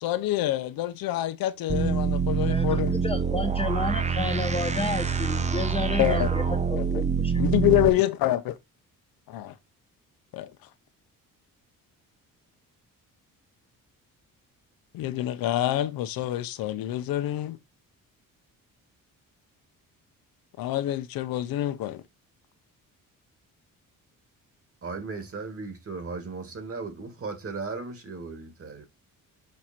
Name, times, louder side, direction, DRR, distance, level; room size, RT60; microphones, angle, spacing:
voice 1, 0.0-2.9 6.0-6.3 6.8-6.9 7.4-8.6 9.3-9.5 10.3-10.5 14.9-17.6 20.6-22.0, left 14 dB, 90° left, 0.8 m, -26 dB
sound 1, 1.7-7.9, right 6 dB, 20° right, 0.6 m, -26 dB
voice 2, 2.5-7.0, left 2 dB, 15° left, 1.0 m, -31 dB
voice 3, 24.8-28.9, right 4 dB, 40° right, 2.4 m, -36 dB
6.4 x 4.3 x 4.4 m
cardioid pair, 100°, 34 cm